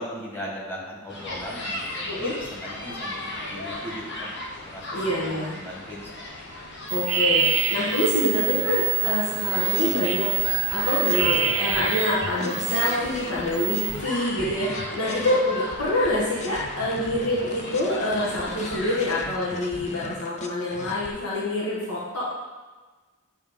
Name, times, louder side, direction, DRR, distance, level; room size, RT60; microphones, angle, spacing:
voice 1, 0.0-6.3 14.9-15.2, equal, 10° left, -5 dB, 1.7 m, -38 dB
sound 1, 1.1-19.0, left 1 dB, 55° left, 1.2 m, -36 dB
voice 2, 4.9-5.5 6.9-22.3, left 1 dB, 75° left, -7 dB, 1.5 m, -26 dB
sound 2, 6.9-12.9 13.3-14.0, right 9 dB, 75° right, 0.6 m, -26 dB
sound 3, 9.4-15.4 15.7-21.1, left 2 dB, 30° left, 0.5 m, -39 dB
9.4 x 3.2 x 5.3 m, 1.3 s
head